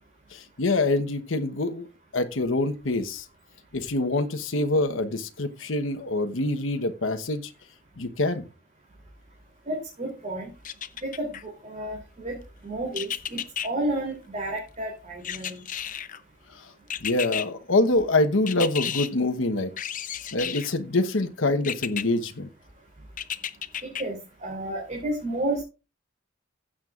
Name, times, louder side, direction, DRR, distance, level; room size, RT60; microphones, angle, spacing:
voice 1, 0.3-1.9 2.1-3.2 3.7-7.5 8.0-8.5 17.0-19.7 20.3-22.5, left 2 dB, 90° left, 1.1 m, -25 dB
voice 2, 9.7-10.5 11.0-12.4 12.6-15.6 23.8-25.6, right 1 dB, 40° right, 3.2 m, -31 dB
sound 1, 10.6-11.4 12.9-13.7 15.2-16.2 16.9-17.5 18.5-19.1 19.8-20.7 21.6-22.0 23.2-24.0 24.5-24.6, left 9 dB, 45° left, 0.7 m, -32 dB
15.5 x 7.4 x 2.5 m
head